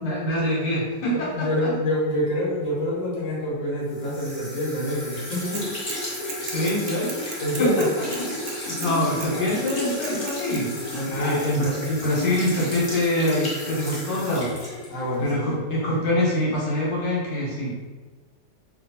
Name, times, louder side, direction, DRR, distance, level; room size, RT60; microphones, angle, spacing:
voice 1, 0.0-1.7 6.4-7.7 8.4-14.5 15.2-17.9, left 1 dB, 75° left, -5 dB, 1.6 m, -25 dB
voice 2, 1.1-5.7 7.4-7.9 11.1-11.8 14.9-15.6, left 1 dB, 50° left, -6 dB, 1.4 m, -27 dB
sound 1, 3.9-15.3, left 1 dB, 35° left, 1.0 m, -33 dB
Bicycle / Mechanisms, 5.5-6.0 6.3-8.9 9.2-9.3 9.7-10.6, right 6 dB, 80° right, 1.2 m, -37 dB
3.0 x 2.7 x 4.1 m, 1.3 s
omnidirectional pair, 1.8 m